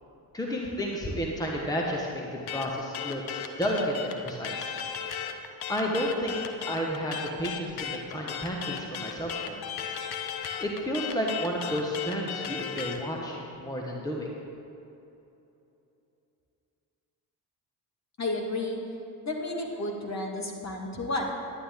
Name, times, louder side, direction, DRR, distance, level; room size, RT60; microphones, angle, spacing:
voice 1, 0.3-4.7 5.2-5.3 5.7-6.4 6.7-9.6 10.6-14.3, equal, 5° left, -1 dB, 1.4 m, -31 dB
sound 1, 2.5-13.0, left 8 dB, 50° left, 1.0 m, -36 dB
voice 2, 18.2-18.8 19.2-21.3, left 2 dB, 35° left, 0 dB, 1.9 m, -32 dB
11.0 x 9.4 x 3.7 m, 2.9 s
hypercardioid pair, 50°, 50 cm